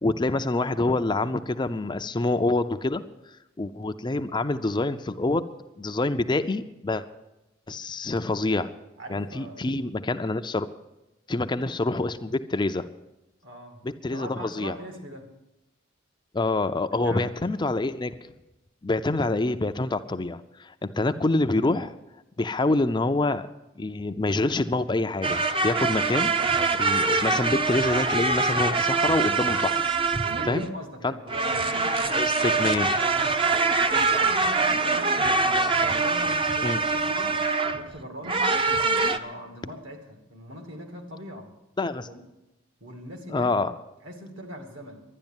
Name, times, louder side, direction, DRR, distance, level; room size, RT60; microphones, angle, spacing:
voice 1, 0.0-3.0 3.6-5.5 5.8-7.0 7.7-8.7 9.1-10.7 11.3-12.9 13.8-14.7 16.3-18.1 18.8-21.9 22.4-23.5 23.8-29.9 30.5-30.7 31.0-31.1 32.1-32.9 36.6-36.8 41.8-42.1 43.3-43.7, left 2 dB, 25° left, 9 dB, 0.5 m, -26 dB
voice 2, 9.0-9.6 13.4-13.8 14.1-15.3 16.9-17.3 30.2-33.7 34.0-35.5 35.9-37.4 37.7-38.6 38.9-41.5 42.1-42.3 42.8-43.5 44.0-45.0, equal, 70° right, 4 dB, 2.4 m, -41 dB
sound 1, 25.2-30.7 31.3-37.8 38.2-39.2, right 3 dB, 25° right, 0.7 m, -24 dB
12.0 x 10.0 x 8.9 m, 0.94 s
head